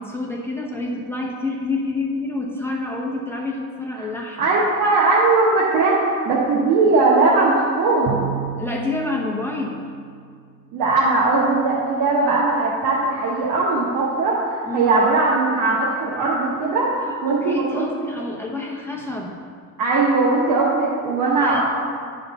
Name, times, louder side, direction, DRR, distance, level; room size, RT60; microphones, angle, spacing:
voice 1, 0.0-4.6 8.6-9.9 14.6-14.9 17.3-19.4 21.4-21.6, left 2 dB, 5° left, -2 dB, 0.9 m, -28 dB
voice 2, 4.4-8.3 10.7-17.8 18.2-18.3 19.8-21.6, right 3 dB, 85° right, -6 dB, 1.3 m, -19 dB
Bowed string instrument, 8.1-10.7, right 9 dB, 70° right, 0.5 m, -33 dB
9.4 x 4.2 x 5.4 m, 2.1 s
cardioid pair, 145°, 33 cm